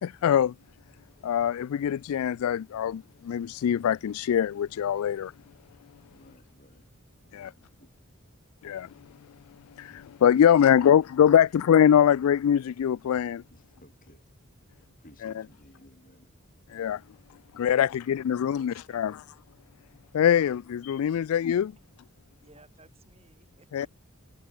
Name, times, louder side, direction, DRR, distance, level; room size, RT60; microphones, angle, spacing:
voice 1, 0.0-0.5 1.2-5.3 7.3-7.5 8.6-8.9 9.8-13.4 15.2-15.3 16.7-17.0 17.5-19.2 20.1-21.7 23.7-23.9, left 9 dB, 80° left, 0.3 m, -23 dB
voice 2, 6.1-6.9 7.2-8.0 11.9-12.0 13.5-14.3 14.9-16.3, left 1 dB, 40° left, 6.4 m, -57 dB
voice 3, 17.8-19.2 22.3-23.9, right 2 dB, 25° right, 5.8 m, -59 dB
head